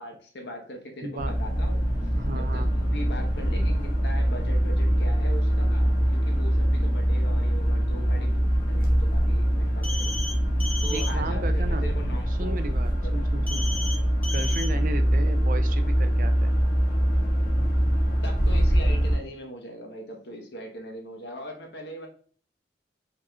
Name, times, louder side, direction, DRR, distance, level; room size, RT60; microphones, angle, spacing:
voice 1, 0.0-1.9 2.3-8.4 8.7-10.2 10.8-12.6 13.0-13.8 18.2-22.1, equal, 80° left, 2 dB, 1.2 m, -40 dB
voice 2, 1.0-1.4 2.2-2.7 10.9-11.9 12.4-13.7 14.3-16.5, right 2 dB, 50° right, 9 dB, 0.5 m, -35 dB
sound 1, 1.2-19.2, equal, 50° left, 1.4 m, -23 dB
sound 2, 9.8-10.3 10.6-11.1 13.5-14.0 14.2-14.7, left 2 dB, 10° left, 1.0 m, -33 dB
5.0 x 4.2 x 2.4 m, 0.44 s
head